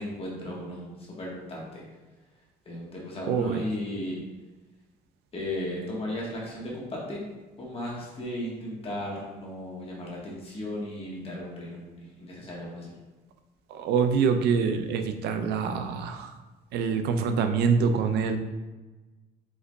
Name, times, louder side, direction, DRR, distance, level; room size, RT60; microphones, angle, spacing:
voice 1, 0.0-1.8 2.6-4.2 5.3-7.2 7.6-12.9, left 1 dB, 35° left, -4 dB, 1.3 m, -35 dB
voice 2, 3.3-3.6 13.7-16.3 16.7-18.4, right 5 dB, 75° right, 8 dB, 0.5 m, -25 dB
4.7 x 3.8 x 2.3 m, 1.2 s
cardioid pair, 110°, 17 cm